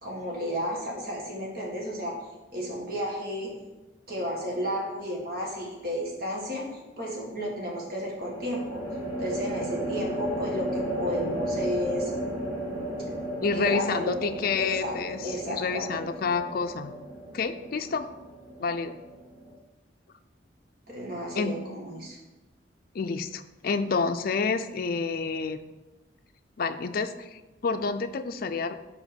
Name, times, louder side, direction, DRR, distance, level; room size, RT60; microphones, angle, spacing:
voice 1, 0.0-2.2 2.5-3.5 4.1-6.6 7.0-8.8 9.2-12.1 13.5-14.9 15.2-16.0 20.9-22.2, equal, 55° right, -3 dB, 1.8 m, -33 dB
sound 1, 5.1-5.6 8.2-19.5, right 1 dB, 15° right, 1.9 m, -34 dB
voice 2, 13.4-16.9 17.3-18.1 18.6-18.9 21.3-21.6 22.9-25.6 26.6-28.7, left 4 dB, 50° left, 9 dB, 0.4 m, -29 dB
5.0 x 4.8 x 5.2 m, 1.1 s
head